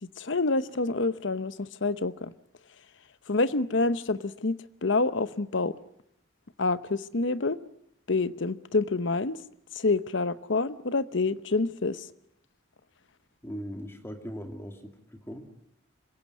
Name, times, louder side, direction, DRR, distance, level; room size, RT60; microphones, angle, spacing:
voice 1, 0.0-2.3 3.3-5.8 6.6-7.6 8.1-9.4 9.7-12.1, left 3 dB, 65° left, 0.9 m, -27 dB
voice 2, 13.4-15.5, equal, 10° left, 2.5 m, -39 dB
26.0 x 16.5 x 9.5 m
head